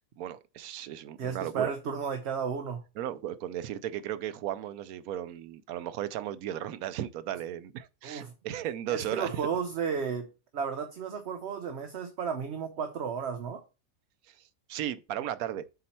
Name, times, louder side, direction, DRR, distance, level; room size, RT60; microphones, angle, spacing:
voice 1, 0.2-1.7 3.0-9.4 14.3-14.4 14.7-15.6, right 11 dB, 85° right, 1.1 m, -35 dB
voice 2, 1.2-2.8 8.0-8.3 8.9-13.6, right 6 dB, 55° right, 1.0 m, -33 dB
7.8 x 4.2 x 4.3 m
omnidirectional pair, 1.5 m